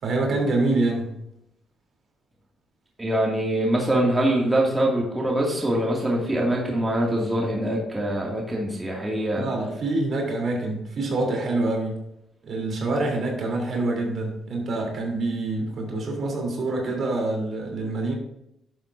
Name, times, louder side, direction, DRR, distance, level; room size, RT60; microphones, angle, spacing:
voice 1, 0.0-1.1 9.3-12.0 12.4-18.1, right 2 dB, 55° right, 0 dB, 3.2 m, -26 dB
voice 2, 3.0-9.5, right 1 dB, 15° right, -3 dB, 2.2 m, -24 dB
11.0 x 7.4 x 2.6 m, 0.82 s
cardioid pair, 90°, 0 cm